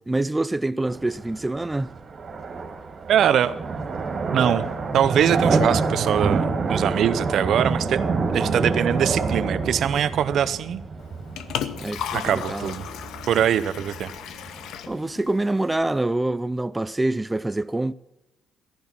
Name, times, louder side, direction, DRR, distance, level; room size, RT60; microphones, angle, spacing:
voice 1, 0.1-1.9 11.8-12.8 14.9-17.9, right 2 dB, 15° right, 0.4 m, -26 dB
sound 1, 0.9-14.8, right 4 dB, 45° right, 2.7 m, -27 dB
voice 2, 3.1-3.6 4.3-4.7 4.9-8.0 8.3-10.8 12.1-12.9 13.3-14.1, right 9 dB, 70° right, 0.7 m, -22 dB
Liquid, 11.0-16.0, left 9 dB, 80° left, 0.8 m, -35 dB
14.0 x 11.0 x 6.0 m
cardioid pair, 90°, 0 cm